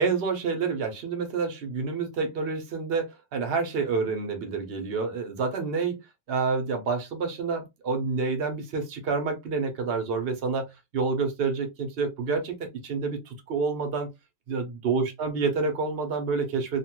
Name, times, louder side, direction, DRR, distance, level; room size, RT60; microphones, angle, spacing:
voice 1, 0.0-6.0 6.3-10.7 10.9-14.1 14.5-16.8, right 4 dB, 75° right, 0.5 m, -28 dB
3.0 x 2.1 x 2.9 m
omnidirectional pair, 2.0 m